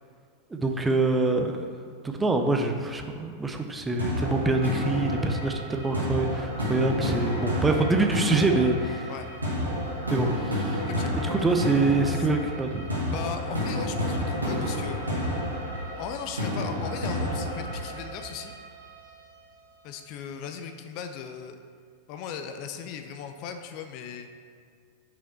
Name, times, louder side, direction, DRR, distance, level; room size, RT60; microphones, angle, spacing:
voice 1, 0.5-1.5 2.1-9.1 10.1-10.8 11.1-12.9, right 2 dB, 10° right, 4 dB, 0.6 m, -25 dB
sound 1, 4.0-18.9, left 1 dB, 80° right, 1.5 m, -30 dB
voice 2, 13.1-15.3 16.0-18.5 19.8-21.6 22.1-24.3, left 7 dB, 40° left, 6 dB, 0.4 m, -37 dB
5.6 x 5.0 x 4.3 m, 2.2 s
figure-of-eight pair, 90°, 0 cm